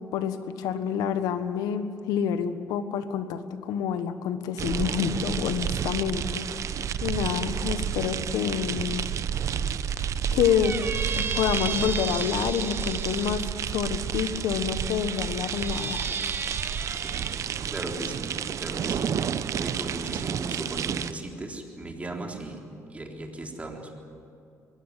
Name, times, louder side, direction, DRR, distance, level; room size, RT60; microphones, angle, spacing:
voice 1, 0.0-6.5 7.0-9.0 10.3-10.8 11.1-13.4 13.7-16.1, left 8 dB, 85° left, 10 dB, 1.4 m, -28 dB
sound 1, 4.6-21.1, right 8 dB, 55° right, 0.8 m, -30 dB
Squeak, 10.4-13.5 14.3-17.4, right 5 dB, 35° right, 1.3 m, -35 dB
voice 2, 17.7-19.1 19.6-22.6 22.9-23.9, right 2 dB, 20° right, 1 dB, 3.8 m, -37 dB
22.5 x 17.5 x 9.9 m, 2.6 s
cardioid pair, 90°, 6 cm